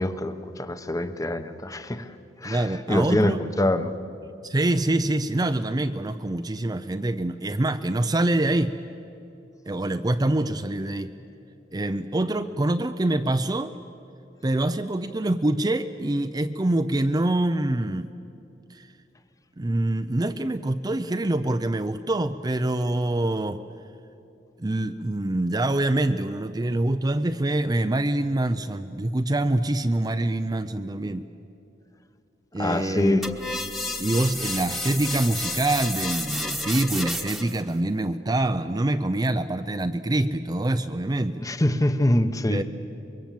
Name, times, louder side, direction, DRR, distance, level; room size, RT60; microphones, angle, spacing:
voice 1, 0.0-2.1 2.4-3.9 32.6-33.3 41.4-42.6, left 1 dB, 20° left, 10 dB, 1.0 m, -24 dB
voice 2, 2.4-3.4 4.4-8.8 9.7-11.1 11.7-13.7 14.4-18.1 18.7-18.9 19.6-23.6 24.6-31.2 32.5-33.2 34.0-41.4 42.5-42.6, right 1 dB, 20° right, 8 dB, 0.5 m, -25 dB
sound 1, 33.2-37.6, left 1 dB, ahead, 1.2 m, -31 dB
25.0 x 22.5 x 7.6 m, 2.8 s
head